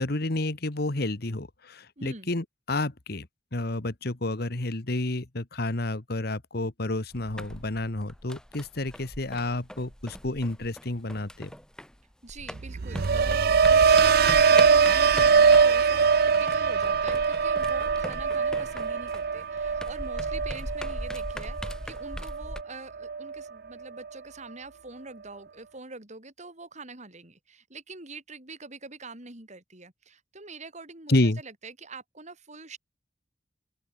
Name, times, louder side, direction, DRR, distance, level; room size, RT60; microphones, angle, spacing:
voice 1, 0.0-11.5 31.1-31.4, left 2 dB, 60° left, 1.6 m, -30 dB
voice 2, 2.0-2.3 12.2-16.1 16.4-32.8, right 3 dB, 40° right, 5.3 m, -44 dB
sound 1, 7.1-12.0 12.3-22.6, equal, 5° left, 1.9 m, -40 dB
sound 2, 12.6-22.6 23.0-23.4, right 5 dB, 60° right, 0.5 m, -22 dB
open air
head